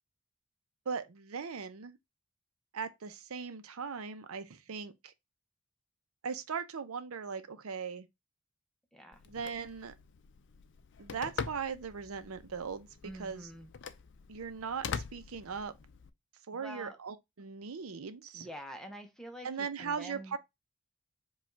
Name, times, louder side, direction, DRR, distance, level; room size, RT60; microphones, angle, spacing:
voice 1, 0.9-2.0 2.7-5.1 6.2-8.1 9.3-9.9 11.0-12.9 13.2-13.5 14.3-15.7 16.5-18.5 19.4-20.4, right 6 dB, 80° right, 0.6 m, -39 dB
voice 2, 8.9-9.2 13.0-13.7 16.5-17.0 18.3-20.4, equal, ahead, 0.7 m, -46 dB
Telephone, 9.1-16.1, left 6 dB, 55° left, 0.4 m, -44 dB
4.9 x 2.4 x 4.5 m
head